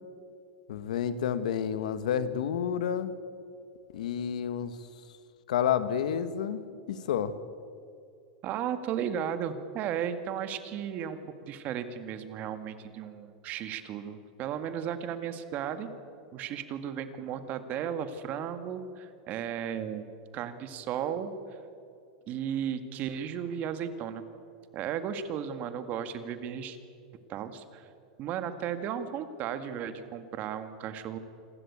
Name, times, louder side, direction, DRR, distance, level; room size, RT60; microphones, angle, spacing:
voice 1, 0.7-3.1 3.9-4.8 5.5-6.6 6.9-7.3, left 8 dB, 85° left, 13 dB, 1.4 m, -29 dB
voice 2, 8.4-15.9 16.3-20.1 20.3-21.3 22.3-24.2 24.7-26.8 27.3-27.9 28.2-31.2, right 8 dB, 40° right, 10 dB, 1.9 m, -35 dB
27.0 x 13.0 x 8.7 m, 2.5 s
supercardioid pair, 125°, 4 cm